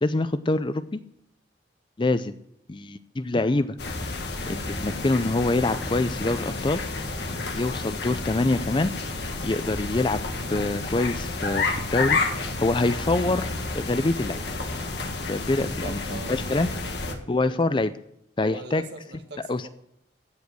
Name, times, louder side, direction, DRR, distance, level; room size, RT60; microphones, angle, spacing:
voice 1, 0.0-1.0 2.0-2.3 2.7-3.8 4.5-6.8 7.6-8.9 9.4-10.2 10.5-12.2 12.6-13.5 13.7-14.4 15.3-16.0 16.3-16.7 17.3-17.9 18.4-18.8 19.5-19.7, left 2 dB, 25° left, 13 dB, 0.5 m, -25 dB
sound 1, 3.8-17.1, left 3 dB, 60° left, 1.5 m, -30 dB
voice 2, 15.6-17.6 18.4-19.7, right 2 dB, 60° right, 4 dB, 1.8 m, -42 dB
15.0 x 5.1 x 7.8 m, 0.77 s
head